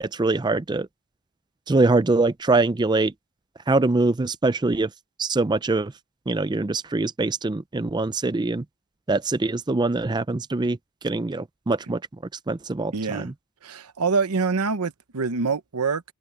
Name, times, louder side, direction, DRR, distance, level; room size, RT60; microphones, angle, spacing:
voice 1, 0.0-0.9 1.7-3.1 3.7-4.9 5.2-5.9 6.3-8.6 9.1-10.8 11.0-12.0 12.5-13.3, right 3 dB, 20° right, 0.4 m, -23 dB
voice 2, 12.9-13.3 13.6-16.0, right 4 dB, 90° right, 0.9 m, -25 dB
head